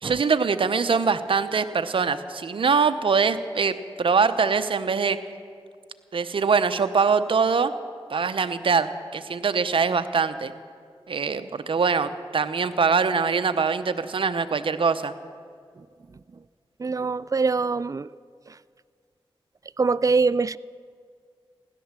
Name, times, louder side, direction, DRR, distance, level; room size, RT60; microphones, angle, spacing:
voice 1, 0.0-5.2 6.1-7.7 8.1-10.5 11.1-15.1, right 5 dB, 65° right, 0.8 m, -23 dB
voice 2, 16.8-18.1 18.5-18.6 19.8-20.6, right 4 dB, 35° right, 0.4 m, -23 dB
16.0 x 11.5 x 7.4 m
cardioid pair, 50°, 10 cm